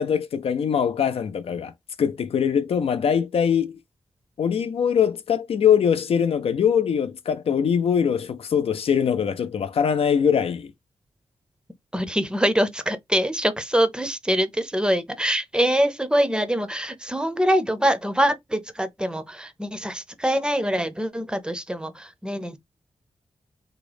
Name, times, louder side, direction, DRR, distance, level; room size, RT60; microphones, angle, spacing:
voice 1, 0.0-1.7 2.0-3.8 4.4-10.7, left 7 dB, 70° left, 0.4 m, -22 dB
voice 2, 11.9-22.6, equal, 10° right, 0.5 m, -24 dB
3.6 x 2.0 x 3.3 m
wide cardioid pair, 110°, 10 cm